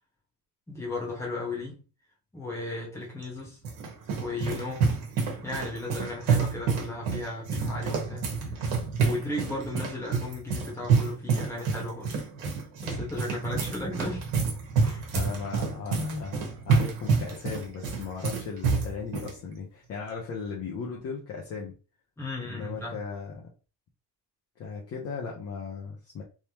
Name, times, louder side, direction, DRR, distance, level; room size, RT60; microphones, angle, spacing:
voice 1, 0.7-1.8 2.3-3.6 4.1-4.9 5.4-8.3 8.5-8.7 9.0-12.1 12.8-14.3 14.8-15.1 22.2-23.0, left 2 dB, 5° left, 1.3 m, -35 dB
sound 1, 3.2-19.3, right 5 dB, 60° right, 1.5 m, -28 dB
voice 2, 15.1-21.7 22.5-23.5 24.6-26.2, left 5 dB, 30° left, 0.7 m, -37 dB
3.5 x 3.0 x 2.9 m
cardioid pair, 165°, 48 cm